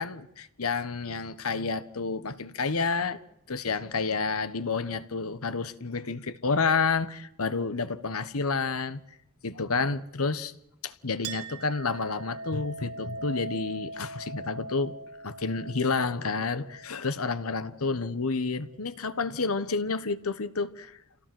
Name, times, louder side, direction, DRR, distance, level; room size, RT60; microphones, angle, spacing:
voice 1, 0.0-3.2 3.5-9.0 9.4-10.5 10.8-14.9 15.2-21.0, left 4 dB, 75° left, 1.2 m, -30 dB
Chink clink, 11.2-18.3, right 2 dB, 90° right, 1.5 m, -42 dB
27.5 x 17.5 x 7.8 m
head